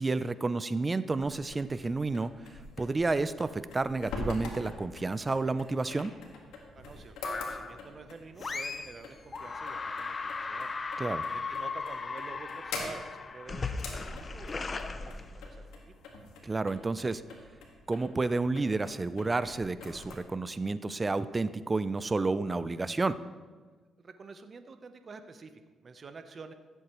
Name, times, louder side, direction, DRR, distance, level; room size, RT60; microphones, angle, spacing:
voice 1, 0.0-6.1 11.0-11.2 16.4-17.2 17.9-23.2, right 3 dB, 25° right, 14 dB, 0.4 m, -30 dB
sound 1, 1.1-20.2, left 3 dB, 90° left, 1.7 m, -45 dB
voice 2, 6.8-10.7 11.2-14.7 15.0-15.8 24.0-26.5, right 4 dB, 45° right, 9 dB, 0.8 m, -49 dB
sound 2, 7.2-7.8 8.4-9.0 9.3-15.8, left 4 dB, 35° left, 0.6 m, -37 dB
15.5 x 7.9 x 3.1 m, 1.4 s
cardioid pair, 75°, 0 cm